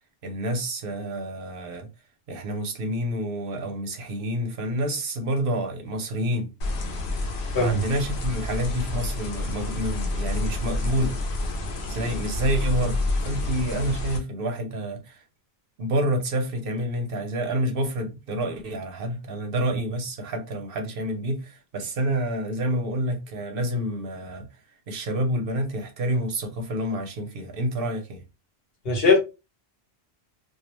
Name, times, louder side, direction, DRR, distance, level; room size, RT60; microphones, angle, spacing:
voice 1, 0.2-1.9 2.3-6.5 7.5-11.1 11.9-15.2 15.8-24.5 24.9-28.2, right 1 dB, 65° right, 0.8 m, -28 dB
sound 1, 6.6-14.2, left 2 dB, 90° left, 0.9 m, -29 dB
voice 2, 28.8-29.2, left 3 dB, 65° left, 1.2 m, -19 dB
2.4 x 2.0 x 3.0 m
omnidirectional pair, 1.0 m